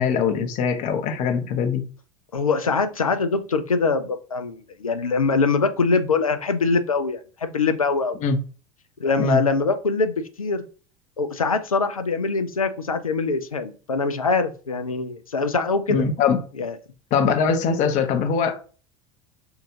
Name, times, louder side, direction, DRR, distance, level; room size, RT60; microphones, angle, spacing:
voice 1, 0.0-1.8 8.2-8.4 9.2-9.4 15.9-16.4 17.1-18.6, left 6 dB, 45° left, 0.7 m, -22 dB
voice 2, 2.3-8.2 9.0-10.6 11.2-16.0 16.6-16.7, left 4 dB, 90° left, 0.4 m, -23 dB
3.5 x 2.3 x 3.0 m
figure-of-eight pair, 75°, 18 cm